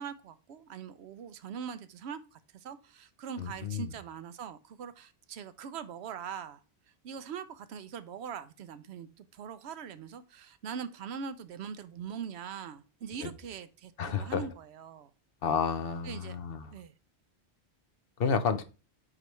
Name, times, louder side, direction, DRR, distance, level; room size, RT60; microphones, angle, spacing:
voice 1, 0.0-6.6 7.0-15.1 16.0-16.4 16.7-16.9, right 7 dB, 75° right, 0.9 m, -42 dB
voice 2, 3.4-3.9 13.2-13.3 14.0-14.5 15.4-16.7 18.2-18.6, left 6 dB, 65° left, 0.9 m, -31 dB
9.6 x 3.3 x 3.1 m
omnidirectional pair, 1.1 m